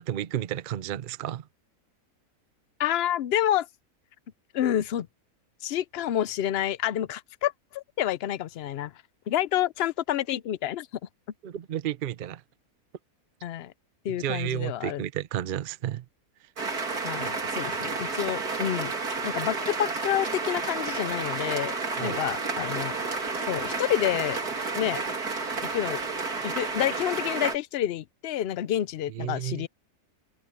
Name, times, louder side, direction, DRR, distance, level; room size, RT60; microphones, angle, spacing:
voice 1, 0.0-1.5 11.4-12.4 14.2-16.0 22.0-22.2 29.1-29.7, right 11 dB, 55° right, 0.6 m, -32 dB
voice 2, 2.8-3.7 4.5-5.1 5.6-8.9 9.3-10.9 13.4-13.7 14.0-15.0 17.0-18.9 19.2-22.9 23.5-24.4 24.7-25.0 25.7-26.0 26.4-29.7, left 11 dB, 70° left, 0.6 m, -28 dB
sound 1, 16.6-27.6, right 4 dB, 80° right, 3.2 m, -31 dB
open air
omnidirectional pair, 1.6 m